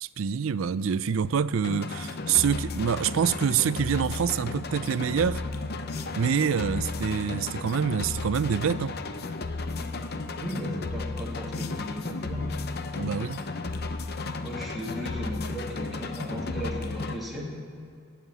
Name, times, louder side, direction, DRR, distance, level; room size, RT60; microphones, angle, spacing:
voice 1, 0.0-5.4 6.2-9.0 13.0-13.4, right 7 dB, 70° right, 0.4 m, -26 dB
sound 1, 1.6-17.2, left 3 dB, 50° left, 0.7 m, -34 dB
voice 2, 10.4-12.4 14.4-17.5, equal, ahead, 2.1 m, -36 dB
15.5 x 5.8 x 9.4 m
head